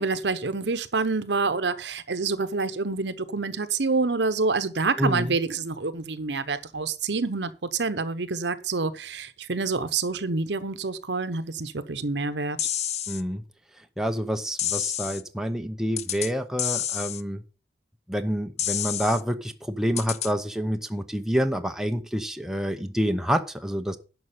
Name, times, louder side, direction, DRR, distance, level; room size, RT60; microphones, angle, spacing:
voice 1, 0.0-12.6, right 4 dB, 75° right, 0.9 m, -27 dB
voice 2, 5.0-5.3 13.1-13.4 14.0-17.4 18.1-24.0, equal, 5° right, 0.7 m, -27 dB
sound 1, 12.6-13.2 14.6-15.2 16.0-16.3 16.6-17.2 18.6-19.2 20.0-20.3, left 10 dB, 40° left, 0.5 m, -29 dB
11.0 x 6.2 x 5.5 m
head